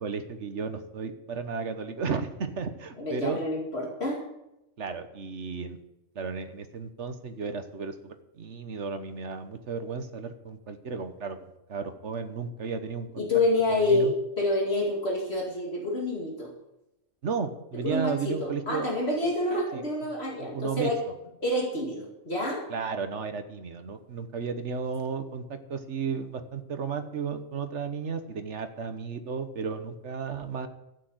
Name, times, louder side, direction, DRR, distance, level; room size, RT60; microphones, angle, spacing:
voice 1, 0.0-3.4 4.8-5.8 6.1-11.4 11.7-13.2 13.7-14.1 17.2-18.9 19.7-19.8 20.4-20.9 22.7-30.7, right 5 dB, 65° right, 9 dB, 1.5 m, -34 dB
voice 2, 3.0-4.2 13.2-16.5 17.8-21.0 21.4-22.7, left 2 dB, 55° left, -1 dB, 2.6 m, -28 dB
12.5 x 8.8 x 7.8 m, 0.90 s
omnidirectional pair, 1.3 m